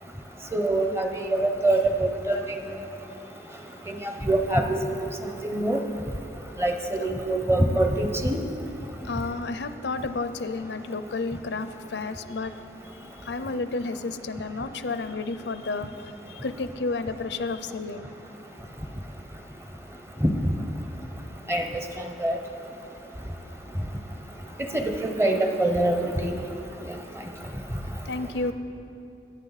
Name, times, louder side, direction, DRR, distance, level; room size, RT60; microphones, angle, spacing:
voice 1, 0.5-2.4 3.9-4.8 5.0-5.1 5.5-5.8 6.6-8.4 20.2-20.3 21.5-21.6 22.2-22.4 24.7-26.4, right 1 dB, 15° right, 4 dB, 0.8 m, -24 dB
voice 2, 9.0-12.5 13.2-18.1 28.0-28.5, left 3 dB, 75° left, 11 dB, 0.6 m, -31 dB
21.5 x 9.0 x 4.1 m, 2.9 s
head